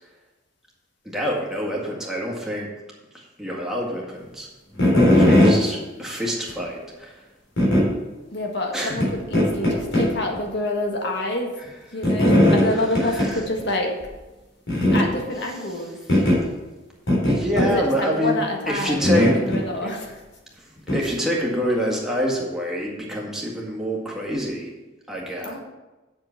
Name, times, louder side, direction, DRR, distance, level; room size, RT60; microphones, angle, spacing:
voice 1, 1.0-2.7 3.1-4.5 5.1-7.2 8.7-9.0 12.7-13.4 17.2-19.4 19.8-19.9 20.6-20.7 20.9-24.7 25.1-25.6, equal, 5° right, -3 dB, 1.8 m, -27 dB
sound 1, 4.8-5.6 6.5-6.6 7.6-7.9 9.0-9.1 9.3-10.1 10.4-10.5 12.0-12.7 12.9-13.3 13.6-13.7 14.0-14.1 14.7-15.1 16.1-16.4 17.1-17.7 19.0-19.6 20.9-21.0, left 1 dB, 85° left, 3.7 m, -17 dB
voice 2, 4.9-5.9 8.3-11.5 11.9-13.9 14.9-16.0 17.5-20.2 21.0-21.1 25.4-25.6, left 1 dB, 60° left, 1 dB, 1.7 m, -27 dB
7.8 x 6.7 x 5.8 m, 1.1 s
head